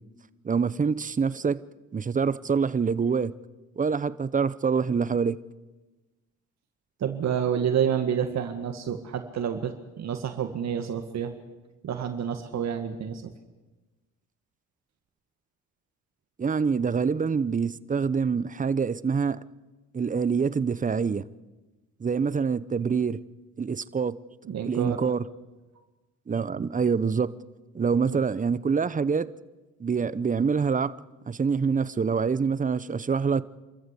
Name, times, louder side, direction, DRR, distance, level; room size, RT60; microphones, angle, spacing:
voice 1, 0.4-1.6 1.9-3.3 3.8-5.4 16.4-19.4 19.9-21.2 22.0-23.2 23.6-24.2 24.6-25.2 26.3-27.3 27.7-29.3 29.8-31.0 31.3-33.4, right 5 dB, 25° right, 0.8 m, -25 dB
voice 2, 7.0-11.3 11.8-13.3 24.5-25.0 28.1-28.2, right 8 dB, 60° right, 1.9 m, -29 dB
27.5 x 14.0 x 8.3 m
cardioid pair, 90°, 30 cm